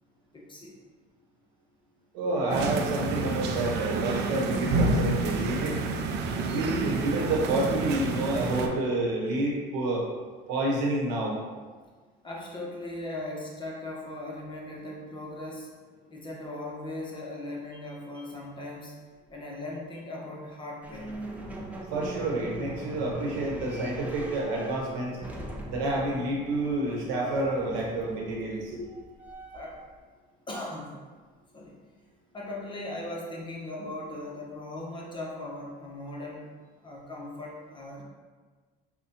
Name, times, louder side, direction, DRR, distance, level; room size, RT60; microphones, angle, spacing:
voice 1, 0.3-0.8 12.2-15.7 16.1-18.9 19.3-21.1 29.5-29.8 30.5-31.0 31.5-31.8 32.3-36.5 36.8-38.0, left 1 dB, 25° left, -3 dB, 0.8 m, -38 dB
voice 2, 2.1-5.8 6.4-10.1 10.5-11.4 21.9-25.2 25.7-28.8, right 2 dB, 85° right, -2 dB, 1.0 m, -29 dB
sound 1, 2.5-8.7, right 3 dB, 60° right, 0.4 m, -29 dB
sound 2, 20.8-29.9, right 1 dB, 10° right, 0.5 m, -41 dB
5.6 x 2.2 x 2.8 m, 1.4 s
supercardioid pair, 100°, 19 cm